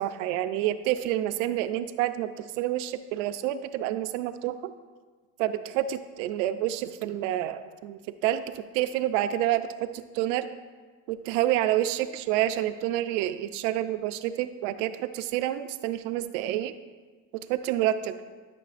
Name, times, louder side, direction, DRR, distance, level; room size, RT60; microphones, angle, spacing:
voice 1, 0.0-4.7 5.4-10.5 11.1-16.7 17.5-18.2, right 13 dB, 90° right, 11 dB, 0.5 m, -28 dB
10.5 x 5.9 x 2.5 m, 1.4 s
cardioid pair, 145°, 36 cm